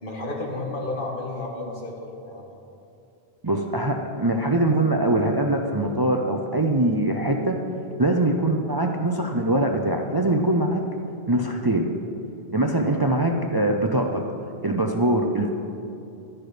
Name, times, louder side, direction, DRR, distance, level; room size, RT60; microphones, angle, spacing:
voice 1, 0.0-2.5, left 2 dB, 55° left, -1 dB, 2.0 m, -32 dB
voice 2, 3.4-7.6 8.0-10.8 11.3-11.9 12.5-14.2 14.6-15.5, right 1 dB, 25° right, 3 dB, 0.6 m, -22 dB
12.5 x 10.5 x 5.1 m, 2.8 s
omnidirectional pair, 1.0 m